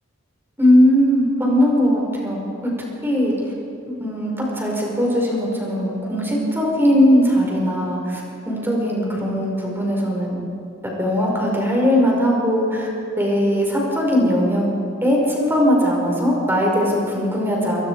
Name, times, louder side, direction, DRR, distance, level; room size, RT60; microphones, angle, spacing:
voice 1, 0.6-2.7 3.0-3.3 4.0-10.4 10.8-12.9 13.2-14.7 15.0-17.8, equal, 10° right, -2 dB, 5.3 m, -19 dB
28.0 x 23.0 x 4.9 m, 2.6 s
head